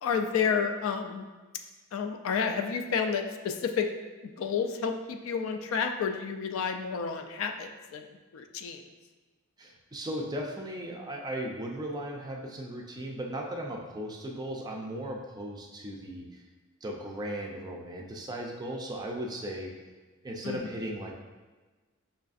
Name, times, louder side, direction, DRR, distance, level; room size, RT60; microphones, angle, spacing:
voice 1, 0.0-1.2 1.9-3.9 4.4-8.1 8.3-8.8 20.4-20.6, left 6 dB, 70° left, 6 dB, 0.3 m, -30 dB
voice 2, 9.6-16.4 16.8-19.7 20.2-21.1, right 1 dB, 20° right, 0 dB, 0.4 m, -37 dB
5.5 x 2.5 x 2.4 m, 1.3 s
head